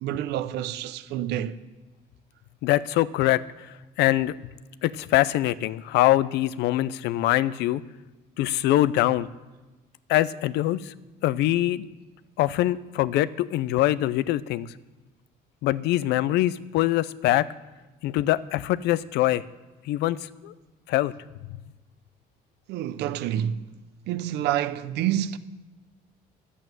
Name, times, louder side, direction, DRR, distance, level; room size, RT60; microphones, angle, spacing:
voice 1, 0.0-1.6 22.7-23.6 24.1-25.4, right 11 dB, 85° right, 0.7 m, -28 dB
voice 2, 2.6-4.3 4.8-7.8 8.4-9.3 10.1-10.9 11.2-11.9 12.4-14.7 15.6-17.5 18.0-19.4 19.9-20.5 20.9-21.1, left 15 dB, 85° left, 0.5 m, -23 dB
11.0 x 8.4 x 9.1 m
cardioid pair, 110°, 17 cm